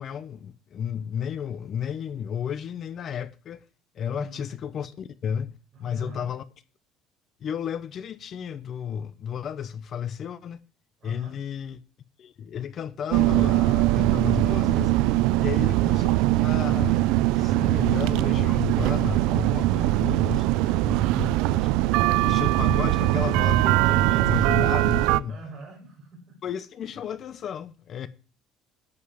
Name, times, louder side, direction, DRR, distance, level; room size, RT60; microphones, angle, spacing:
voice 1, 0.0-3.6 3.9-6.4 7.4-10.6 11.0-11.8 12.2-14.9 15.4-17.0 17.4-20.4 20.8-21.7 22.2-25.4 26.4-28.1, left 8 dB, 35° left, 0.7 m, -33 dB
voice 2, 4.1-4.5 5.7-6.3 11.0-11.4 25.3-26.4, right 2 dB, 30° right, 5.6 m, -45 dB
sound 1, 13.1-25.2, right 16 dB, 75° right, 0.5 m, -21 dB
11.5 x 5.4 x 8.5 m
cardioid pair, 165°, 0 cm